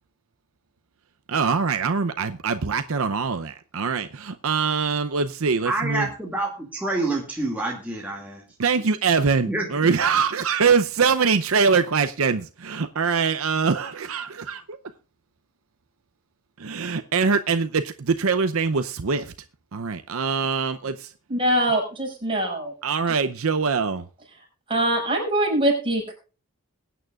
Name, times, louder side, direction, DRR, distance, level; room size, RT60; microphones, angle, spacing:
voice 1, 1.3-6.1 8.6-14.8 16.6-19.3 19.7-21.1 22.8-24.0, right 5 dB, 65° right, 0.6 m, -23 dB
voice 2, 5.6-8.4 9.4-9.7, right 2 dB, 5° right, 2.2 m, -27 dB
voice 3, 21.3-22.7 24.7-26.1, right 1 dB, 25° right, 5.6 m, -23 dB
21.5 x 9.1 x 2.4 m
head